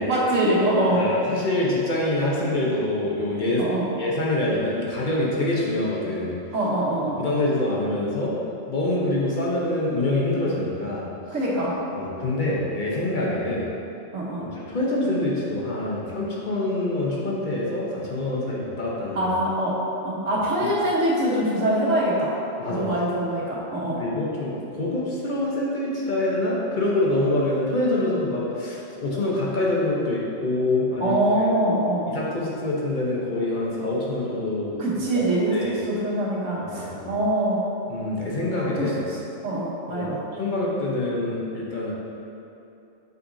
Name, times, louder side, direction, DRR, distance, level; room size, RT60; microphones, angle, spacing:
voice 1, 0.0-1.0 3.6-3.8 6.5-7.2 11.3-11.7 14.1-14.5 19.1-19.8 20.0-22.3 22.7-24.0 31.0-32.1 34.8-37.6 38.8-38.9 39.4-40.2, right 1 dB, 90° right, -5 dB, 1.5 m, -24 dB
voice 2, 0.8-3.6 4.0-6.4 7.2-8.4 8.7-11.1 11.9-13.7 14.5-19.3 20.6-20.7 22.6-22.9 23.5-23.6 24.0-31.5 32.1-34.8 35.1-35.2 35.5-35.8 36.7-37.1 37.9-39.0 39.9-40.1 40.3-41.9, left 2 dB, 45° left, -5 dB, 0.9 m, -25 dB
6.2 x 5.8 x 2.7 m, 2.8 s
omnidirectional pair, 1.3 m